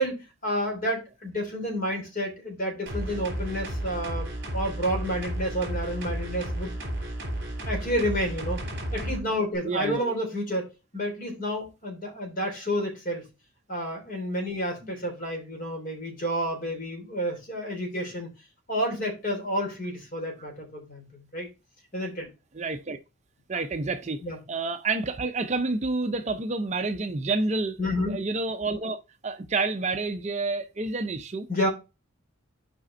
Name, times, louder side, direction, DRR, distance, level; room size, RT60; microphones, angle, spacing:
voice 1, 0.0-6.7 7.6-8.6 8.9-10.7 10.9-13.2 13.7-18.3 18.7-21.5 21.9-22.3 24.2-24.4 27.8-28.2 31.5-31.7, equal, 40° left, 3.2 m, -30 dB
sound 1, 2.9-9.2 9.5-9.6, right 1 dB, 50° right, 3.4 m, -33 dB
voice 2, 9.6-10.2 22.5-23.0 23.5-24.2 24.5-27.8 28.1-31.5, right 3 dB, 30° right, 0.5 m, -29 dB
6.2 x 5.0 x 4.3 m
head